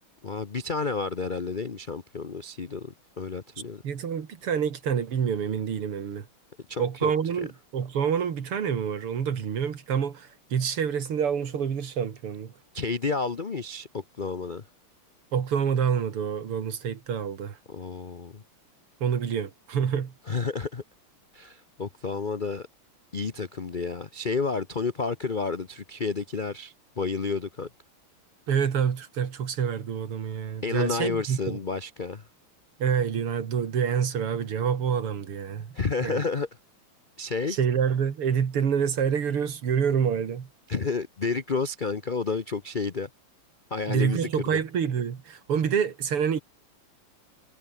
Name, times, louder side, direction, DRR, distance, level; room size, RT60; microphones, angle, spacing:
voice 1, 0.2-3.8 6.7-7.1 12.7-14.6 17.7-18.4 20.3-20.8 21.3-22.7 23.1-27.7 30.6-32.2 35.7-36.5 37.2-37.6 40.7-43.1 43.7-44.3, left 4 dB, 35° left, 0.8 m, -30 dB
voice 2, 3.8-6.3 6.8-12.5 15.3-17.6 19.0-20.1 28.5-31.6 32.8-35.7 36.0-36.2 37.5-40.5 43.9-46.4, right 7 dB, 90° right, 3.0 m, -27 dB
omnidirectional pair, 2.4 m